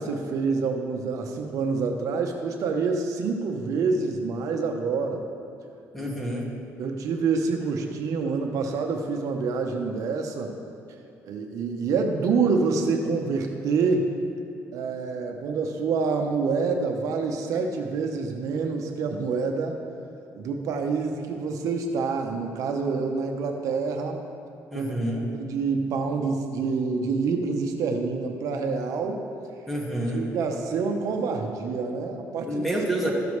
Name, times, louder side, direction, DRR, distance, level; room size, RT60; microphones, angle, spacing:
voice 1, 0.0-5.2 6.0-6.1 6.8-10.5 11.2-14.1 14.7-19.8 20.4-24.2 24.7-24.9 25.3-29.2 30.1-32.7, right 4 dB, 70° right, 3 dB, 0.8 m, -27 dB
voice 2, 5.9-6.4 24.7-25.2 29.7-30.2 32.4-33.1, right 1 dB, ahead, -4 dB, 2.0 m, -28 dB
14.0 x 6.9 x 3.2 m, 2.6 s
cardioid pair, 110°, 6 cm